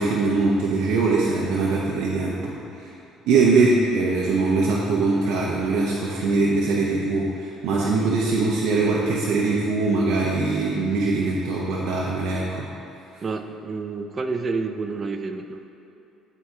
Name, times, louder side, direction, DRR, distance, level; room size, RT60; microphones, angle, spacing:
voice 1, 0.0-2.9 3.3-12.7, right 3 dB, 75° right, -4 dB, 0.7 m, -22 dB
voice 2, 13.2-15.6, right 4 dB, 35° right, 7 dB, 0.4 m, -29 dB
11.5 x 4.5 x 2.9 m, 2.8 s
cardioid pair, 115°, 0 cm